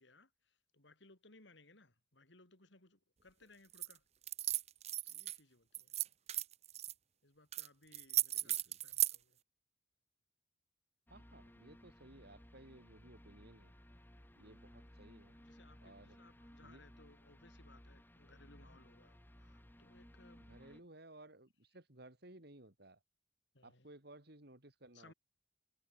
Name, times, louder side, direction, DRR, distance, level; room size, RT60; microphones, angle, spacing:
voice 1, 0.0-4.0 5.1-6.0 7.2-9.4 15.4-20.8 23.5-23.9 24.9-25.1, left 2 dB, 65° left, 3.6 m, -64 dB
sound 1, 3.7-3.9 4.2-5.4 5.7-6.9 7.5-7.7 7.9-9.2, right 13 dB, 35° right, 0.7 m, -36 dB
voice 2, 8.4-8.8 11.1-13.7 14.3-15.4 15.8-16.2 16.6-16.8 20.4-23.0 23.6-25.1, right 1 dB, 55° right, 3.1 m, -58 dB
sound 2, 11.1-20.8, equal, 10° left, 2.0 m, -60 dB
head